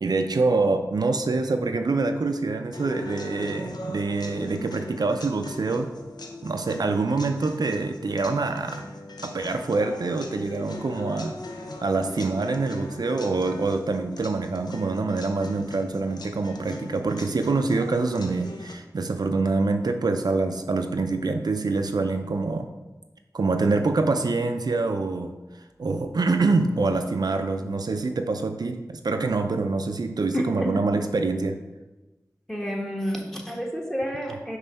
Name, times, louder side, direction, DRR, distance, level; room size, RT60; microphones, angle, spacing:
voice 1, 0.0-5.9 6.4-8.9 9.2-11.4 11.8-22.7 23.3-25.4 25.8-31.6, right 3 dB, 75° right, 6 dB, 0.4 m, -25 dB
sound 1, 2.7-18.7, left 1 dB, 90° left, 0.6 m, -40 dB
voice 2, 30.3-30.8 32.5-34.6, equal, 5° left, 0 dB, 1.2 m, -30 dB
5.5 x 3.1 x 5.5 m, 1.1 s
wide cardioid pair, 40°, 7 cm